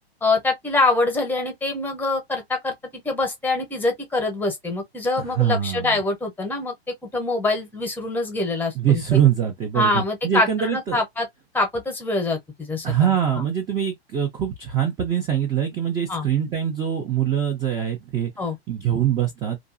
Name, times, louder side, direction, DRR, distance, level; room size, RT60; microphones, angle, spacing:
voice 1, 0.2-6.7 7.1-9.0 9.7-11.3 11.5-13.4 16.1-16.3 18.4-18.6, left 2 dB, 5° left, 0.8 m, -24 dB
voice 2, 5.2-6.0 8.7-11.0 12.8-18.3 18.7-19.6, right 9 dB, 15° right, 0.4 m, -23 dB
2.6 x 2.4 x 2.5 m
figure-of-eight pair, 110°, 32 cm